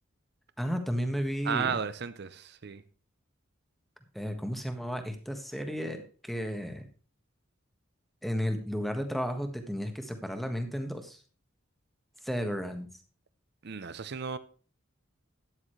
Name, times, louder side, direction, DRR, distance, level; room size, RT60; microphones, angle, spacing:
voice 1, 0.6-1.8 4.1-6.9 8.2-11.2 12.2-12.9, equal, ahead, 1.3 m, -33 dB
voice 2, 1.5-2.8 13.6-14.4, right 6 dB, 55° right, 0.6 m, -33 dB
12.5 x 9.7 x 3.2 m
head